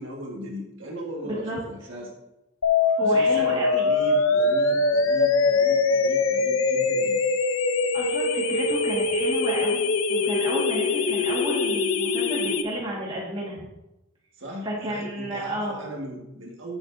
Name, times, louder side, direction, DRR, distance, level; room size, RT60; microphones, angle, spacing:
voice 1, 0.0-2.1 3.0-7.2 14.4-16.8, equal, 70° right, -1 dB, 1.8 m, -37 dB
voice 2, 1.2-1.6 3.0-3.9 7.9-13.6 14.6-15.8, equal, 25° right, -4 dB, 1.8 m, -31 dB
sound 1, 2.6-12.6, left 3 dB, 80° left, 0.7 m, -23 dB
9.9 x 7.0 x 2.7 m, 0.94 s
head